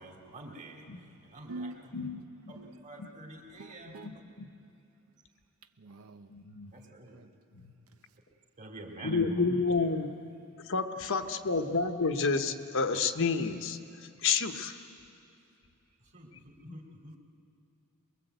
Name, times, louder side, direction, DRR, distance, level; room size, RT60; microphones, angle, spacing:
voice 1, 0.0-1.7 2.5-4.1 6.7-7.2 8.6-10.0 16.1-17.2, right 2 dB, 35° right, 2.9 m, -48 dB
voice 2, 1.5-2.2 2.5-2.9 3.6-4.2 5.8-6.3 7.1-7.3, right 2 dB, 70° right, 0.8 m, -45 dB
voice 3, 6.3-6.7 7.5-7.7 9.0-10.1 10.7-13.8 14.2-14.8, left 4 dB, 60° left, 1.1 m, -29 dB
23.5 x 22.0 x 8.1 m
head